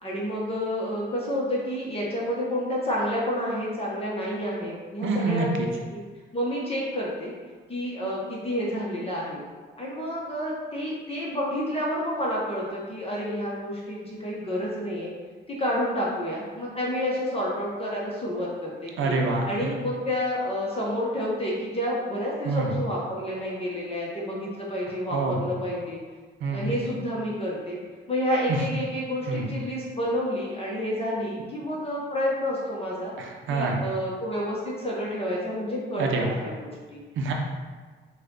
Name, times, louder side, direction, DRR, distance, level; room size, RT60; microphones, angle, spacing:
voice 1, 0.0-6.0 6.3-7.3 7.7-9.4 9.8-15.1 15.5-19.1 19.4-26.0 26.5-27.8 28.1-33.1 33.5-37.0, equal, 30° left, -5 dB, 1.1 m, -29 dB
voice 2, 5.0-5.7 19.0-19.7 22.4-22.8 25.1-25.5 26.4-26.7 28.5-28.6 29.3-29.5 33.2-33.9 36.0-36.4 37.2-37.3, right 3 dB, 80° right, 2 dB, 0.8 m, -26 dB
5.5 x 2.5 x 3.8 m, 1.5 s
cardioid pair, 90°, 20 cm